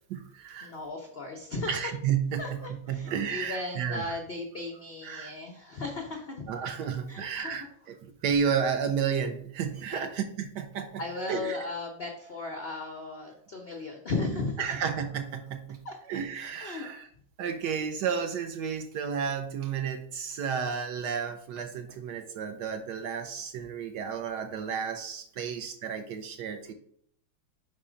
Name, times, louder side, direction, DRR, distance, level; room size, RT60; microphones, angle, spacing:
voice 1, 0.0-0.8 1.7-2.6 2.9-4.2 5.0-5.3 6.5-11.6 14.6-15.8 16.1-17.1 17.4-26.7, right 7 dB, 70° right, 6 dB, 1.1 m, -32 dB
voice 2, 0.6-1.7 2.4-6.5 7.1-7.7 11.0-14.8 15.8-15.9 16.6-16.9, left 3 dB, 75° left, 2 dB, 0.5 m, -36 dB
4.9 x 4.3 x 4.9 m, 0.65 s
omnidirectional pair, 2.2 m